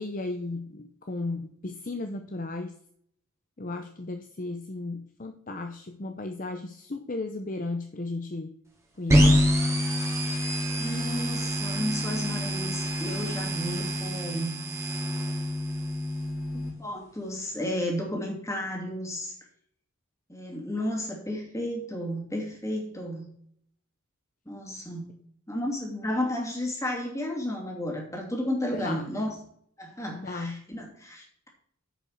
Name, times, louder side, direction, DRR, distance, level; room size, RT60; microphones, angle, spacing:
voice 1, 0.0-2.7 3.6-8.6 9.0-9.4 28.7-29.1 30.1-30.6, left 2 dB, 40° left, 6 dB, 0.7 m, -35 dB
sound 1, 9.1-16.7, equal, 15° right, 2.1 m, -26 dB
voice 2, 10.7-14.6 16.5-19.3 20.3-23.3 24.5-25.1 25.5-29.3 29.8-31.5, left 1 dB, 15° left, -1 dB, 2.7 m, -33 dB
10.0 x 5.3 x 6.5 m, 0.65 s
head